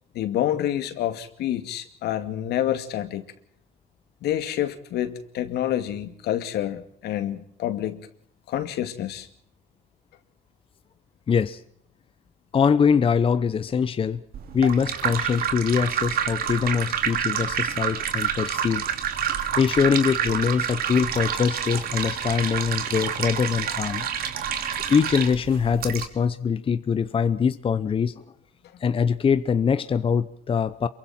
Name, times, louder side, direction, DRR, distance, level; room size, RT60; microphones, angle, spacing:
voice 1, 0.1-3.2 4.2-8.1 8.5-9.3, left 11 dB, 75° left, 2.4 m, -28 dB
voice 2, 11.3-11.6 12.5-14.2 14.5-18.8 19.6-24.0 24.9-28.1 28.8-30.9, left 6 dB, 30° left, 0.9 m, -23 dB
sound 1, 14.3-26.1, right 8 dB, 60° right, 2.8 m, -28 dB
27.5 x 23.5 x 4.4 m
cardioid pair, 110°, 17 cm